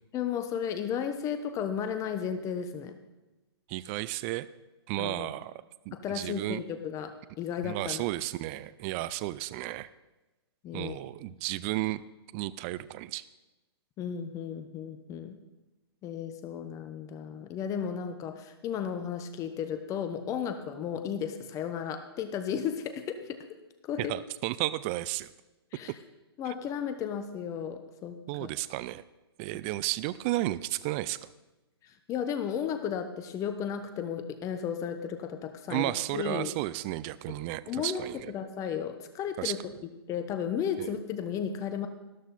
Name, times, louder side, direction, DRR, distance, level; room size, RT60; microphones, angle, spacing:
voice 1, 0.1-3.0 5.0-5.3 5.9-8.0 10.6-10.9 14.0-15.4 16.0-23.4 23.8-24.1 25.7-25.9 26.4-28.2 31.8-36.5 37.7-38.0 38.3-39.6 40.1-41.9, left 8 dB, 25° left, 8 dB, 0.9 m, -34 dB
voice 2, 3.7-4.5 4.9-5.5 5.9-6.6 7.6-9.9 10.7-12.0 12.3-13.2 24.0-25.3 26.5-26.6 28.3-29.0 29.4-31.2 35.7-38.3 39.4-39.6 40.8-40.9, right 17 dB, 30° right, 17 dB, 0.4 m, -33 dB
13.5 x 12.5 x 4.1 m, 1.1 s
hypercardioid pair, 135°, 14 cm